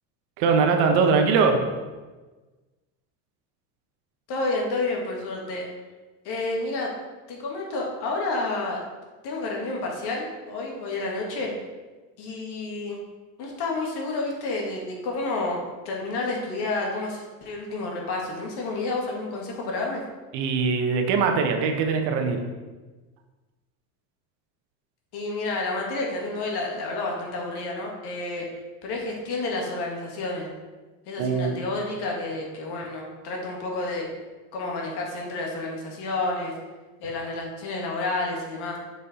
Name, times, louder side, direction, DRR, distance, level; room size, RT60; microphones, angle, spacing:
voice 1, 0.4-1.6 20.3-22.4 31.2-31.6, right 5 dB, 65° right, 4 dB, 1.3 m, -21 dB
voice 2, 4.3-5.7 6.2-6.9 7.3-8.9 9.2-11.5 12.2-13.0 13.4-15.6 15.8-20.0 25.1-28.5 28.8-30.5 31.1-34.1 34.5-36.5 37.0-38.8, left 2 dB, 55° left, -1 dB, 2.1 m, -30 dB
7.1 x 4.9 x 4.4 m, 1.3 s
supercardioid pair, 90°, 45 cm